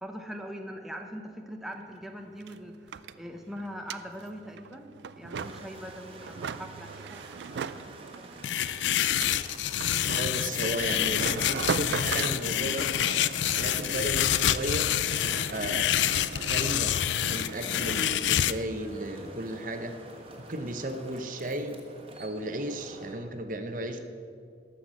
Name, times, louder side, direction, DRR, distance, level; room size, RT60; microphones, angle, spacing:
voice 1, 0.0-7.2 8.0-8.4, equal, ahead, 3 dB, 0.6 m, -42 dB
sound 1, 1.7-1.8 2.0-18.6, right 6 dB, 75° right, 0.4 m, -39 dB
sound 2, 5.4-23.1, right 2 dB, 30° right, 1.3 m, -49 dB
sound 3, 8.4-18.5, left 11 dB, 85° left, 0.4 m, -27 dB
voice 2, 10.2-12.9 13.5-14.9 15.2-15.9 16.5-17.0 17.3-19.9 20.5-21.8 22.2-24.0, right 1 dB, 45° right, 8 dB, 0.8 m, -34 dB
13.0 x 5.9 x 7.5 m, 2.3 s
head